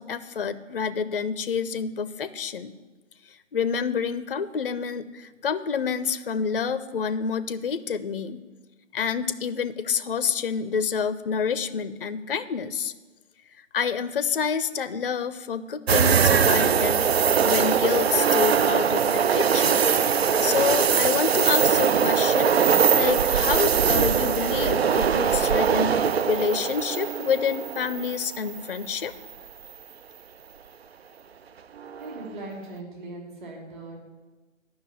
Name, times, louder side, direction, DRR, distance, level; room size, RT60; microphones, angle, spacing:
voice 1, 0.0-2.7 3.3-8.4 8.9-12.9 13.7-19.9 20.4-29.1, left 6 dB, 45° left, 14 dB, 0.5 m, -28 dB
sound 1, 15.9-28.9 29.3-29.4 31.8-32.3, right 7 dB, 55° right, 0.4 m, -22 dB
voice 2, 32.0-34.0, right 2 dB, 40° right, -1 dB, 3.2 m, -39 dB
10.5 x 6.1 x 8.8 m, 1.3 s
figure-of-eight pair, 150°, 38 cm